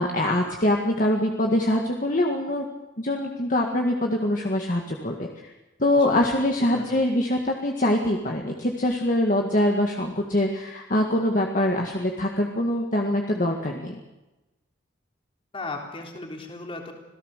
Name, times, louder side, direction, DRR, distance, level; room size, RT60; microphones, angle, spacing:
voice 1, 0.0-2.6 3.0-5.5 5.8-14.0, left 1 dB, 45° left, 1 dB, 1.9 m, -24 dB
voice 2, 6.6-7.0 15.5-16.9, left 3 dB, 30° left, 1 dB, 3.7 m, -36 dB
26.5 x 17.5 x 6.6 m, 1.0 s
head